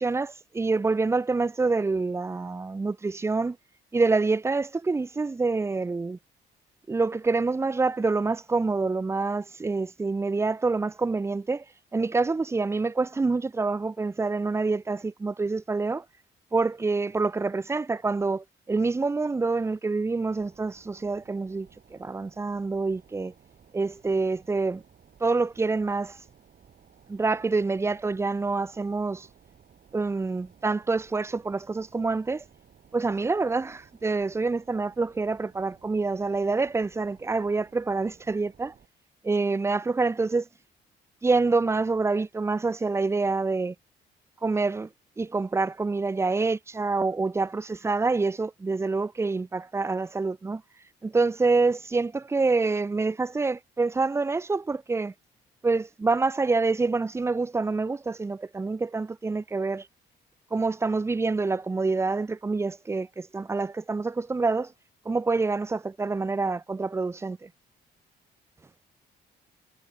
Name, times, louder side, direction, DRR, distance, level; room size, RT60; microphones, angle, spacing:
voice 1, 0.0-3.6 3.9-6.2 6.9-11.6 11.9-16.0 16.5-23.3 23.7-24.8 25.2-26.2 27.1-29.3 29.9-32.4 32.9-38.7 39.2-40.5 41.2-43.7 44.4-44.9 45.2-50.6 51.0-55.1 55.6-59.9 60.5-64.7 65.1-67.5, right 3 dB, 15° right, 0.4 m, -26 dB
sound 1, 20.3-38.9, right 7 dB, 50° right, 2.7 m, -58 dB
cardioid pair, 90°, 20 cm